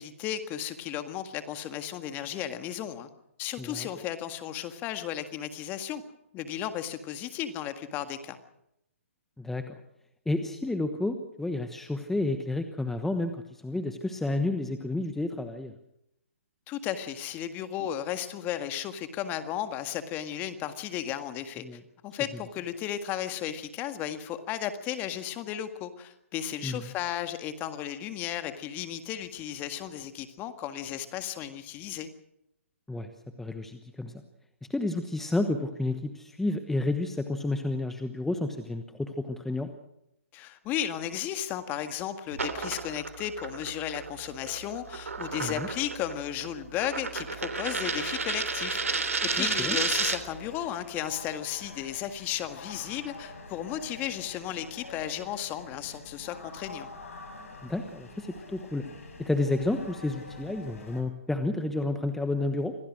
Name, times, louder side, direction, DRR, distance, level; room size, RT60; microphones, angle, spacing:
voice 1, 0.0-3.1 3.4-6.0 6.3-8.4 16.7-32.1 40.3-56.9, left 11 dB, 25° left, 9 dB, 1.8 m, -34 dB
voice 2, 3.6-3.9 9.4-9.7 10.3-15.7 21.6-21.8 26.6-26.9 32.9-33.1 33.4-34.1 34.7-39.7 45.4-45.7 49.4-49.8 57.6-58.8 59.2-62.8, left 2 dB, 5° left, 7 dB, 1.1 m, -31 dB
sound 1, 42.3-50.4, right 4 dB, 85° right, 3.3 m, -32 dB
sound 2, 50.2-61.0, left 3 dB, 75° left, 6.3 m, -46 dB
26.0 x 17.5 x 6.3 m, 0.79 s
hypercardioid pair, 140°, 8 cm